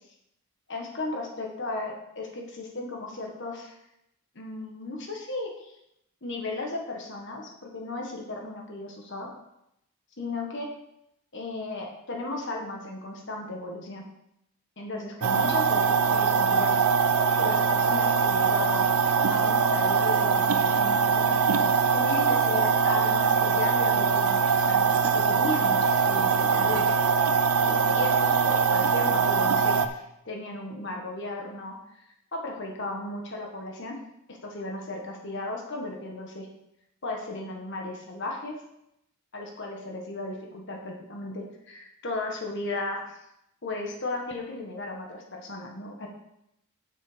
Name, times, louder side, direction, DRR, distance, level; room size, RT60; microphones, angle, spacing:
voice 1, 0.7-3.8 4.3-5.7 6.2-9.3 10.2-10.7 11.3-14.1 14.8-16.8 17.3-18.9 19.3-21.4 21.9-26.9 27.6-31.7 32.3-34.0 34.3-36.5 37.0-38.6 39.3-43.2 43.6-46.1, left 2 dB, 55° left, 1 dB, 1.5 m, -35 dB
sound 1, 15.2-29.9, right 5 dB, 85° right, 0.6 m, -22 dB
8.3 x 6.7 x 5.0 m, 0.81 s
head